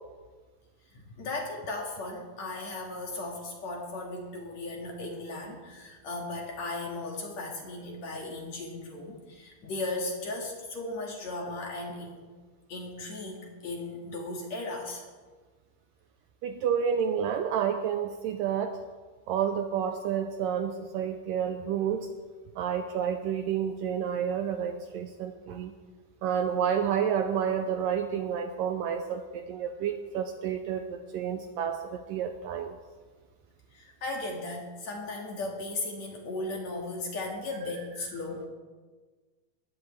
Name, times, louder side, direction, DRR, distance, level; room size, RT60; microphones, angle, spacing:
voice 1, 0.9-12.2 12.7-15.0 33.7-38.5, left 2 dB, 50° left, 0 dB, 2.9 m, -36 dB
voice 2, 16.4-18.8 19.3-22.1 22.6-25.7 26.2-32.8, right 8 dB, 80° right, 6 dB, 2.1 m, -30 dB
20.0 x 15.5 x 3.3 m, 1.4 s
omnidirectional pair, 4.5 m